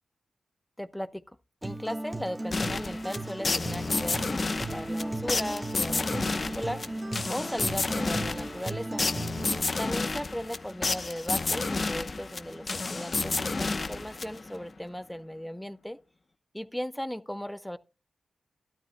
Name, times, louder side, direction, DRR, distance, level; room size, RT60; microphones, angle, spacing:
voice 1, 0.8-1.2 1.6-6.8 7.3-9.0 9.8-16.0 16.5-17.8, equal, 5° left, 0.9 m, -37 dB
Acoustic guitar, 1.6-9.6, right 2 dB, 20° right, 1.7 m, -36 dB
sound 1, 2.5-14.6, left 3 dB, 45° left, 0.9 m, -31 dB
12.5 x 12.5 x 2.2 m
cardioid pair, 70°, 0 cm